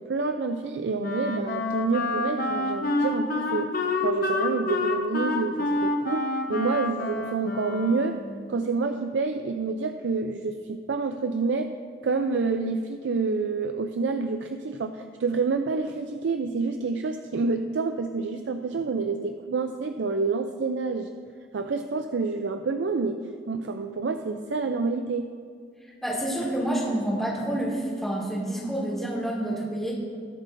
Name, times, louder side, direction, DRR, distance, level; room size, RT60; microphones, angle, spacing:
voice 1, 0.0-8.2 8.5-11.7 12.0-21.1 21.5-23.2 23.5-25.3, right 4 dB, 80° right, 7 dB, 0.4 m, -28 dB
Wind instrument woodwind instrument, 1.0-8.4, left 2 dB, 50° left, 0.8 m, -28 dB
voice 2, 26.0-29.9, right 1 dB, ahead, -6 dB, 2.4 m, -28 dB
21.0 x 7.4 x 2.6 m, 2.1 s
head